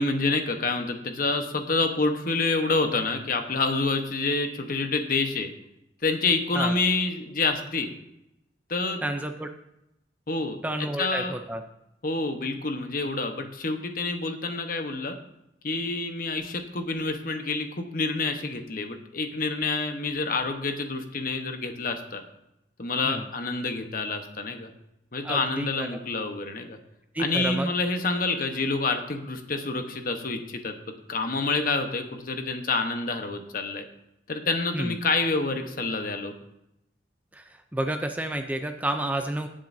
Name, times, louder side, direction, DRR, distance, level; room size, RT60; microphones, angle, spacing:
voice 1, 0.0-5.5 6.0-7.9 8.7-9.0 10.3-10.6 11.0-11.4 12.0-15.2 15.6-22.2 22.8-24.7 25.1-26.8 27.2-30.7 31.1-33.8 34.3-36.3, left 3 dB, 50° left, 6 dB, 1.1 m, -27 dB
voice 2, 9.0-9.5 10.6-11.6 23.0-23.3 25.2-25.9 27.1-27.7 34.7-35.0 37.3-39.5, right 1 dB, 10° right, 6 dB, 0.5 m, -30 dB
17.5 x 7.6 x 2.7 m, 0.85 s
head